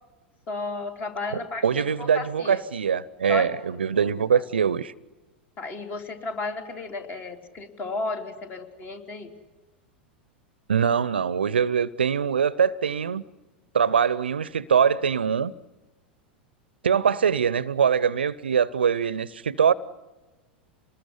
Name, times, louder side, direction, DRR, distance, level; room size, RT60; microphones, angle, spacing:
voice 1, 0.5-2.6 3.3-3.5 4.3-4.4 5.6-9.3, left 3 dB, 35° left, 3.5 m, -33 dB
voice 2, 1.6-4.9 10.7-13.2 13.7-15.5 16.8-19.7, right 7 dB, 75° right, 0.8 m, -23 dB
27.0 x 20.0 x 9.8 m
figure-of-eight pair, 90°, 6 cm